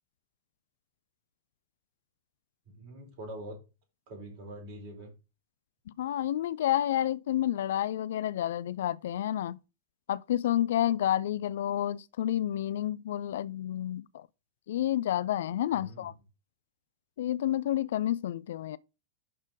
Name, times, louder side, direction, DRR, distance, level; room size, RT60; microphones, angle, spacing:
voice 1, 2.7-3.6 4.1-5.1 15.7-16.1, right 1 dB, 45° right, 4.5 m, -44 dB
voice 2, 6.0-9.6 10.1-14.3 14.7-16.1 17.2-18.8, left 12 dB, 60° left, 0.4 m, -30 dB
11.0 x 4.3 x 4.6 m
figure-of-eight pair, 90°, 0 cm